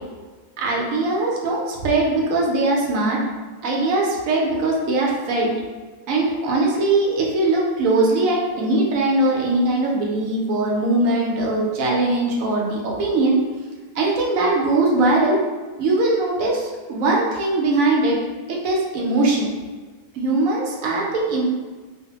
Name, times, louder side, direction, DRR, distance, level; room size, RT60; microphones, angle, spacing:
voice 1, 0.6-3.2 3.6-5.5 6.1-13.4 14.0-15.4 15.8-18.2 18.5-19.5 20.1-21.5, right 2 dB, 70° right, -2 dB, 0.9 m, -20 dB
2.6 x 2.0 x 2.9 m, 1.4 s
omnidirectional pair, 1.6 m